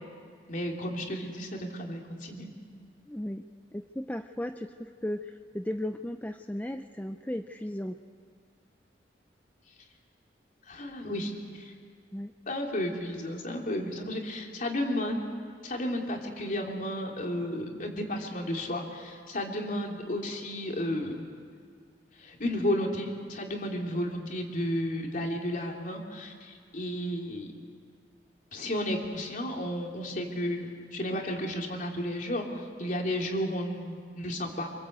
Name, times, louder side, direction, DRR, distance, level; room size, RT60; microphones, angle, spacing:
voice 1, 0.5-2.5 10.7-11.7 12.5-15.2 15.6-21.2 22.2-27.5 28.5-34.7, left 1 dB, 50° left, 1 dB, 3.3 m, -33 dB
voice 2, 3.1-3.4 3.7-8.0 12.1-12.3, left 1 dB, 10° left, 7 dB, 0.6 m, -35 dB
26.0 x 25.5 x 8.1 m, 2.1 s
head